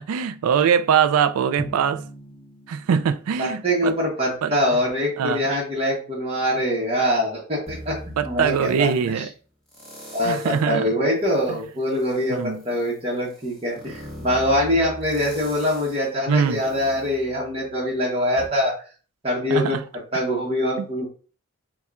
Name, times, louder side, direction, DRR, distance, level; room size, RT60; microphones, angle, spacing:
voice 1, 0.0-2.0 2.7-3.9 4.4-4.5 5.2-5.5 8.2-9.3 10.2-10.9 12.3-12.6 16.3-16.6 19.5-19.8 20.8-21.1, right 7 dB, 85° right, 0.3 m, -22 dB
Drum, 1.6-3.8, right 1 dB, 30° left, 2.1 m, -39 dB
voice 2, 3.4-7.9 8.3-8.9 9.2-9.3 10.1-18.7 19.2-19.8 20.1-21.1, left 1 dB, 25° right, 1.0 m, -23 dB
sound 1, 7.7-9.1 9.7-10.7 11.2-17.9 18.4-18.5, equal, ahead, 1.1 m, -41 dB
6.9 x 2.3 x 2.4 m
head